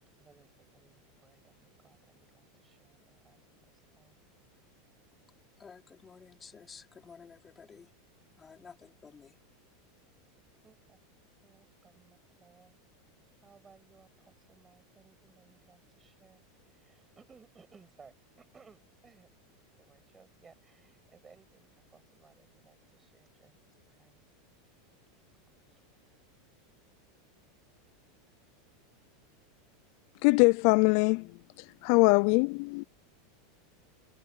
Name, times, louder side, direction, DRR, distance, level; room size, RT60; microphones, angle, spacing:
voice 1, 0.2-3.4 3.7-4.2 8.5-8.7 10.6-11.0 11.4-12.8 13.4-24.3 25.7-25.8 27.8-27.9, right 5 dB, 20° right, 7.0 m, -62 dB
voice 2, 5.6-7.9 8.4-9.4, left 6 dB, 20° left, 4.1 m, -52 dB
voice 3, 30.2-31.3 31.8-32.8, left 31 dB, 60° left, 0.3 m, -22 dB
supercardioid pair, 120°, 0 cm